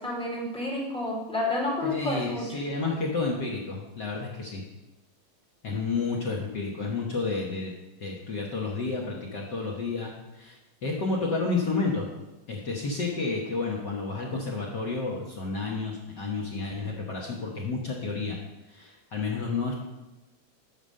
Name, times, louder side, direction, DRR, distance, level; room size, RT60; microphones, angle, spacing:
voice 1, 0.0-2.4, left 2 dB, ahead, -3 dB, 1.9 m, -30 dB
voice 2, 1.8-4.6 5.6-7.7 8.0-12.1 12.5-18.4 18.7-19.8, left 3 dB, 55° left, -2 dB, 1.3 m, -31 dB
8.9 x 5.8 x 6.5 m, 1.0 s
omnidirectional pair, 3.3 m